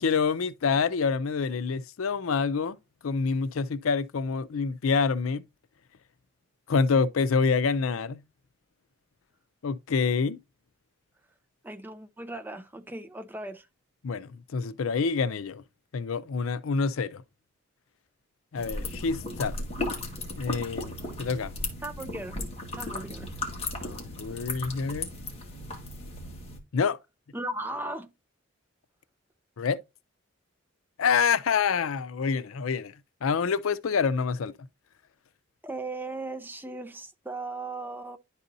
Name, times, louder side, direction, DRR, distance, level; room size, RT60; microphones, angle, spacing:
voice 1, 0.0-2.8 3.0-5.4 6.7-8.2 9.6-10.4 14.0-15.6 15.9-17.2 18.5-19.5 20.4-20.9 21.2-21.5 23.8-25.1 26.7-27.0 29.6-29.8 31.0-32.9 33.2-34.5, left 5 dB, 85° left, 0.5 m, -27 dB
voice 2, 11.6-13.7 21.8-22.4 22.7-23.3 27.3-28.1 35.6-38.2, right 2 dB, 10° right, 0.5 m, -37 dB
sound 1, 18.6-26.6, left 2 dB, 30° left, 1.6 m, -36 dB
11.0 x 4.1 x 2.6 m
head